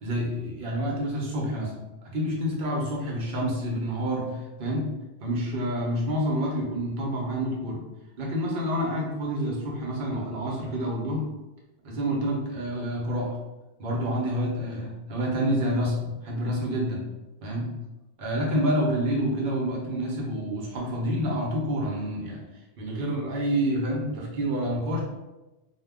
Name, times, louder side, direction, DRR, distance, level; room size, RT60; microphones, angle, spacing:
voice 1, 0.0-4.9 5.2-7.8 8.2-11.3 11.8-13.4 13.8-17.0 17.4-17.7 18.2-22.4 22.8-25.0, equal, 55° right, -2 dB, 0.8 m, -28 dB
2.2 x 2.1 x 3.5 m, 1.1 s
omnidirectional pair, 1.2 m